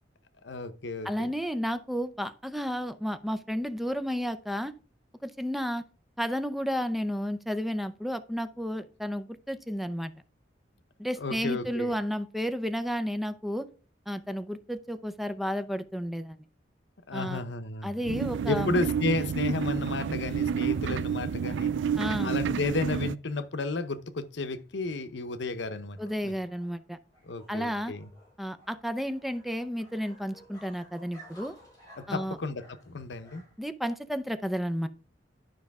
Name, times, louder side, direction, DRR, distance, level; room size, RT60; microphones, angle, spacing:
voice 1, 0.4-1.3 11.2-11.9 17.1-17.9 18.5-21.8 22.2-26.0 26.2-26.3 27.3-28.1 32.0-33.4, left 3 dB, 75° left, 0.8 m, -32 dB
voice 2, 1.0-4.7 5.2-5.8 6.2-10.1 11.0-13.7 14.1-16.4 17.1-17.4 17.8-18.8 22.0-22.4 26.0-27.0 27.5-27.9 28.4-31.5 32.1-32.4 33.6-34.9, equal, ahead, 0.5 m, -32 dB
sound 1, 18.1-23.1, right 7 dB, 85° right, 0.4 m, -29 dB
sound 2, 24.3-33.8, equal, 25° left, 5.3 m, -56 dB
11.5 x 5.4 x 3.5 m
head